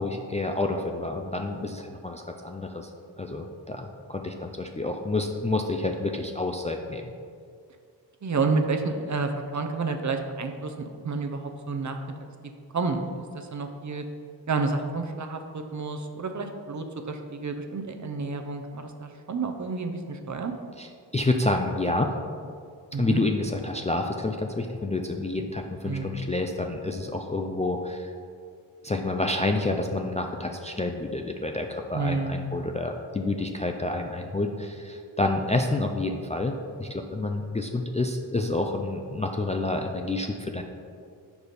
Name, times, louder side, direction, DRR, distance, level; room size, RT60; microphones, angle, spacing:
voice 1, 0.0-2.9 3.2-7.1 20.8-22.1 23.0-28.1 28.8-40.6, left 2 dB, 15° left, 3 dB, 0.3 m, -29 dB
voice 2, 8.2-12.0 12.7-13.0 13.3-14.0 14.5-20.5 22.9-23.2 25.8-26.2 31.9-32.6, right 4 dB, 40° right, 5 dB, 0.6 m, -30 dB
5.0 x 4.7 x 4.1 m, 2.2 s
cardioid pair, 50°, 44 cm